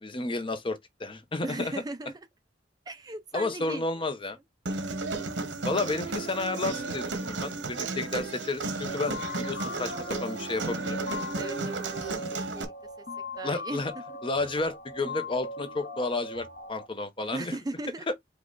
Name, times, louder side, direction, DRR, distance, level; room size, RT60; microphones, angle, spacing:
voice 1, 0.0-1.7 3.3-4.4 5.6-11.0 13.4-13.9 14.2-17.6 18.1-18.2, left 2 dB, 30° left, 0.7 m, -31 dB
voice 2, 1.4-2.3 2.9-4.1 11.4-12.7 13.4-13.8 14.1-14.2 17.3-18.1, right 2 dB, 20° right, 0.4 m, -38 dB
Human voice, 4.7-12.6, right 3 dB, 75° right, 1.0 m, -33 dB
sound 1, 8.9-16.9, left 2 dB, 60° left, 1.0 m, -39 dB
5.1 x 2.3 x 3.8 m
head